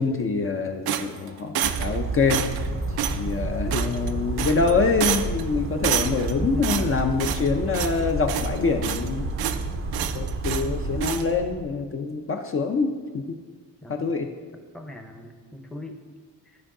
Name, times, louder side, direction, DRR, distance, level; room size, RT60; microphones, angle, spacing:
voice 1, 0.0-2.5 3.2-9.3 10.1-13.4 13.9-14.3, left 4 dB, 35° left, 4 dB, 0.5 m, -25 dB
sound 1, 0.9-2.0 2.3-2.7 3.0-3.2 3.7-4.1 4.4-4.7 5.0-5.4 5.8-6.3 6.6-7.5 7.7-8.0 8.3-9.1 9.4-9.6 9.9-10.7 11.0-11.2, right 10 dB, 90° right, 0.6 m, -28 dB
Bird vocalization bird call bird song, 1.6-11.1, right 5 dB, 35° right, 0.5 m, -31 dB
sound 2, 2.3-11.6, left 3 dB, 70° left, 1.6 m, -35 dB
voice 2, 13.8-14.1 14.7-16.0 16.5-16.6, left 1 dB, ahead, 4 dB, 0.7 m, -40 dB
12.5 x 4.6 x 3.7 m, 1.5 s
cardioid pair, 120°, 36 cm